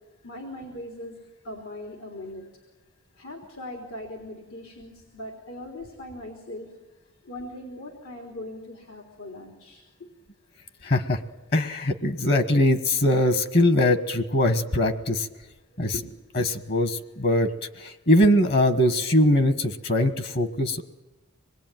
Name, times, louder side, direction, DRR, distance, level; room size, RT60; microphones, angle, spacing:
voice 1, 0.2-1.1 1.4-2.4 3.2-6.7 7.2-10.1 15.7-16.0, left 1 dB, 85° left, 1 dB, 3.6 m, -40 dB
voice 2, 10.8-11.2 11.5-15.3 15.8-15.9 16.3-17.5 17.8-20.8, left 1 dB, 50° left, 9 dB, 1.3 m, -22 dB
26.0 x 20.5 x 9.2 m, 1.1 s
head